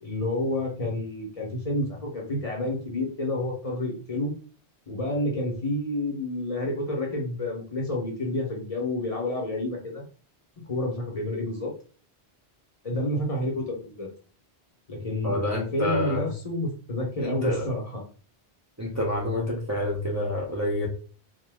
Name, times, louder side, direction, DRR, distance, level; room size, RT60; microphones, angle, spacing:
voice 1, 0.0-4.3 4.9-10.0 10.6-11.7 12.8-14.1 14.9-18.0, left 1 dB, 35° left, -2 dB, 0.8 m, -29 dB
voice 2, 15.2-16.3 17.2-17.7 18.8-20.9, left 1 dB, 20° right, -2 dB, 0.5 m, -28 dB
2.8 x 2.2 x 3.4 m, 0.40 s
omnidirectional pair, 1.1 m